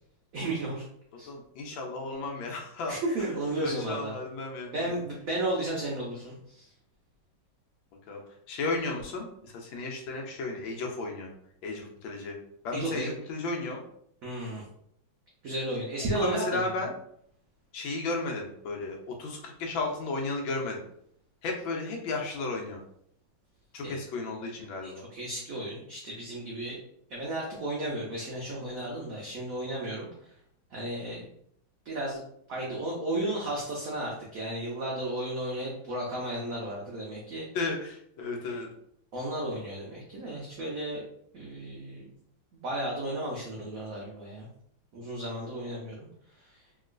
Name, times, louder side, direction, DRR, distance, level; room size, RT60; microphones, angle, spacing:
voice 1, 0.3-0.8 1.2-1.3 2.9-4.2 4.7-6.7 12.7-13.1 14.2-14.6 15.4-16.7 23.8-24.0 24.8-26.8 27.1-30.1 30.7-31.3 31.8-32.2 32.5-37.5 39.1-41.0 41.3-42.1 42.6-44.5 44.9-46.1 46.4-46.6, right 1 dB, 75° right, -3 dB, 0.7 m, -33 dB
voice 2, 1.3-3.0 3.6-4.8 8.1-8.2 8.5-11.3 11.6-12.3 12.6-13.8 16.2-16.9 17.7-20.8 21.4-22.8 23.7-25.0 37.5-38.7, left 3 dB, 80° left, 1 dB, 1.4 m, -34 dB
3.0 x 2.8 x 2.4 m, 0.69 s
omnidirectional pair, 2.2 m